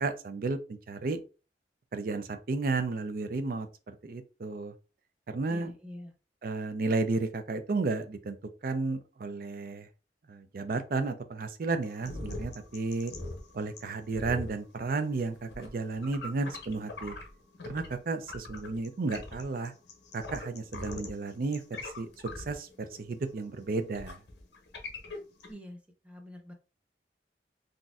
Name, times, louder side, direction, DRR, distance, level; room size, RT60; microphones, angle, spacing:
voice 1, 0.0-1.2 1.9-4.7 5.3-5.7 6.4-8.4 8.6-9.9 10.3-13.1 13.5-17.2 17.7-19.7 20.1-22.1 22.4-24.2, right 3 dB, 55° right, 9 dB, 0.4 m, -33 dB
voice 2, 5.5-6.1 25.0-25.1 25.5-25.8 26.0-26.5, equal, 5° right, 2 dB, 0.6 m, -45 dB
sound 1, 11.8-18.0 18.2-25.5, left 2 dB, 75° left, 0.8 m, -42 dB
3.9 x 2.5 x 2.3 m, 0.33 s
head